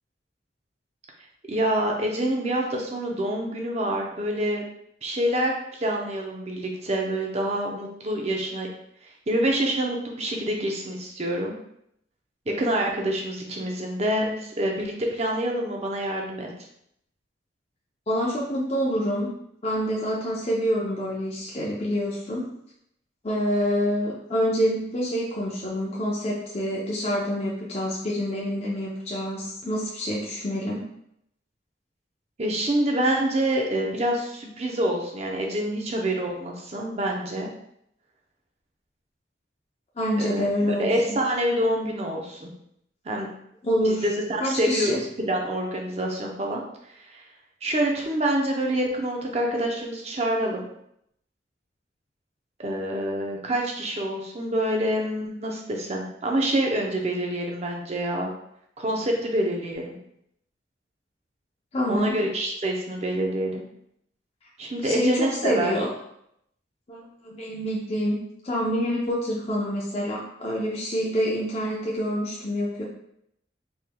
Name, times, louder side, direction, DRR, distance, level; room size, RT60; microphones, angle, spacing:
voice 1, 1.5-4.6 5.0-8.7 9.3-11.5 12.5-16.5 32.4-37.5 40.2-40.5 40.8-42.5 43.0-43.3 43.8-46.6 46.9-47.2 47.6-50.7 52.6-58.3 58.8-60.0 61.9-63.6 64.6-65.7, right 1 dB, 35° right, 0 dB, 0.6 m, -26 dB
voice 2, 18.1-19.3 19.6-22.5 23.2-30.8 40.0-41.2 43.6-44.0 44.4-45.0 61.7-62.1 64.8-65.9 66.9-72.8, equal, 35° left, -5 dB, 0.6 m, -27 dB
4.3 x 3.5 x 2.2 m, 0.74 s
head